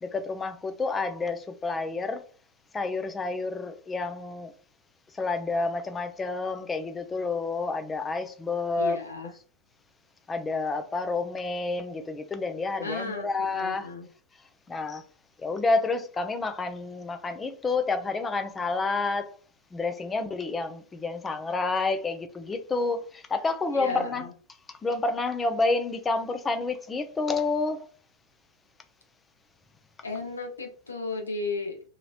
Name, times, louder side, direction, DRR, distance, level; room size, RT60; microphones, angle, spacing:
voice 1, 0.0-2.2 2.7-4.5 5.1-9.0 10.3-13.9 14.7-15.0 15.4-19.3 19.7-24.3 24.7-27.9, left 3 dB, 15° left, 0.5 m, -29 dB
voice 2, 8.8-9.3 12.8-14.1 23.7-24.3 30.0-31.8, left 3 dB, 75° left, 0.7 m, -34 dB
3.0 x 2.8 x 2.4 m
figure-of-eight pair, 90°, 0 cm